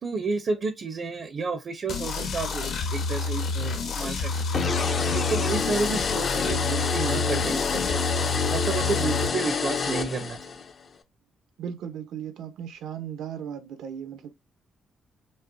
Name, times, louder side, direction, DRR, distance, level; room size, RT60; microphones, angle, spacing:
voice 1, 0.0-4.6 5.0-8.1 8.5-10.4, right 3 dB, 40° right, 0.6 m, -31 dB
sound 1, 1.9-9.3, left 3 dB, 60° left, 1.0 m, -29 dB
sound 2, 4.5-10.7, left 5 dB, 40° left, 0.5 m, -28 dB
voice 2, 11.6-14.3, right 8 dB, 85° right, 0.8 m, -36 dB
5.3 x 2.1 x 2.6 m
cardioid pair, 160°, 0 cm